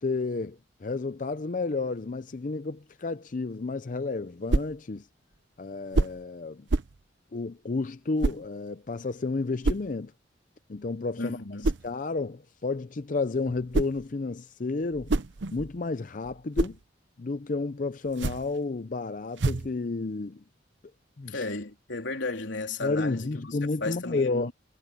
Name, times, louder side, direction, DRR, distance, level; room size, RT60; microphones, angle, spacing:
voice 1, 0.0-5.1 5.6-6.7 7.3-10.1 10.7-11.4 11.6-15.1 15.5-16.8 17.2-20.4 21.2-21.4 22.8-24.5, left 3 dB, 45° left, 0.5 m, -31 dB
sound 1, 4.5-4.8 5.9-6.2 6.7-7.0 8.2-8.5 9.6-9.9 11.6-11.9 13.5-14.1 14.8-15.8 16.2-16.8 18.0-18.6 19.4-19.8, right 2 dB, 80° right, 0.7 m, -28 dB
voice 2, 11.2-11.7 21.3-24.5, left 3 dB, 85° left, 3.3 m, -34 dB
head